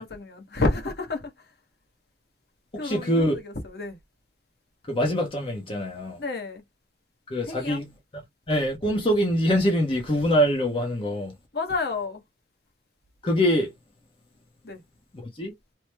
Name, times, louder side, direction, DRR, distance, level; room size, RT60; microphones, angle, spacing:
voice 1, 0.0-1.5 2.8-4.0 6.2-6.6 7.4-7.8 11.5-12.2 14.6-14.8, left 3 dB, 65° left, 0.9 m, -30 dB
voice 2, 2.8-3.3 4.9-6.2 7.3-7.9 8.5-11.4 13.2-13.7 15.4-15.5, equal, 30° left, 0.7 m, -24 dB
3.0 x 2.0 x 3.3 m
head